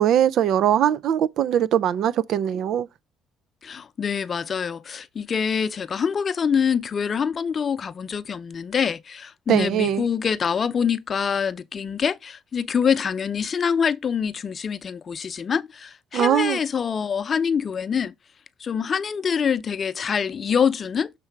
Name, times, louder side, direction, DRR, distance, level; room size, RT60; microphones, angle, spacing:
voice 1, 0.0-2.9 9.5-10.1 16.1-16.6, right 10 dB, 65° right, 0.4 m, -21 dB
voice 2, 3.6-18.1 18.6-21.1, left 7 dB, 45° left, 0.6 m, -25 dB
6.8 x 3.3 x 5.8 m
supercardioid pair, 75°, 0 cm